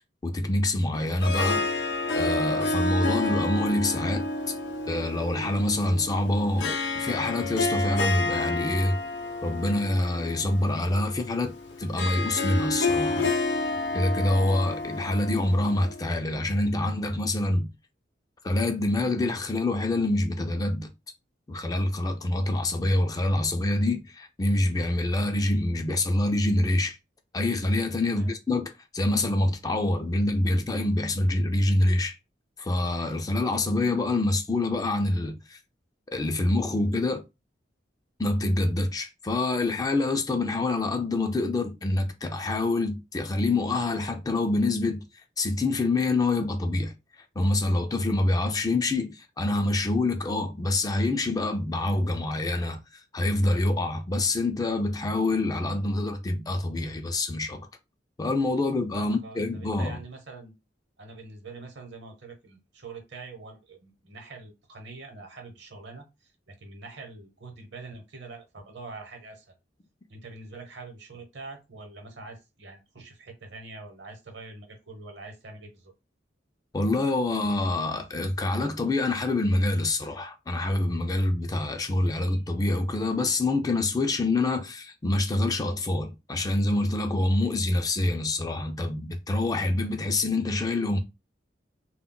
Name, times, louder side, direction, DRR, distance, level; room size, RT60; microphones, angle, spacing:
voice 1, 0.2-4.5 4.9-9.0 9.4-11.5 11.8-13.3 13.9-17.7 18.4-20.9 21.5-27.0 27.3-32.2 32.6-35.6 36.1-37.2 38.2-45.1 45.4-46.9 47.4-57.7 58.2-60.0 76.7-91.0, left 2 dB, 20° left, 0.3 m, -26 dB
Harp, 0.9-16.2, left 2 dB, 75° left, 0.5 m, -30 dB
voice 2, 58.9-60.5 61.0-69.5 70.1-75.9, right 3 dB, 70° right, 0.9 m, -44 dB
2.2 x 2.1 x 3.7 m
head